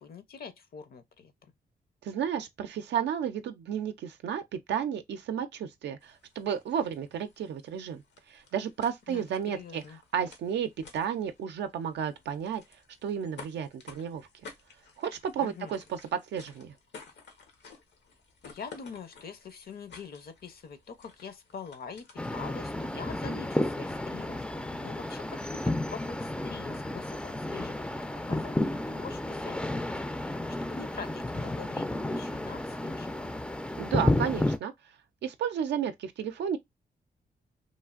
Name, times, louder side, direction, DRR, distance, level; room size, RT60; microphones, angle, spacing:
voice 1, 0.0-1.5 9.1-10.0 15.4-15.7 18.4-28.0 28.3-29.8 30.2-33.4, left 6 dB, 60° left, 0.6 m, -45 dB
voice 2, 2.0-8.0 8.3-9.8 10.1-12.6 13.0-14.3 15.0-16.7 33.8-34.7 35.2-36.6, right 8 dB, 90° right, 0.4 m, -32 dB
sound 1, 6.0-22.5, left 4 dB, 85° left, 0.8 m, -54 dB
sound 2, 22.2-34.6, left 1 dB, 5° left, 0.3 m, -32 dB
3.1 x 2.4 x 2.3 m
cardioid pair, 95°, 18 cm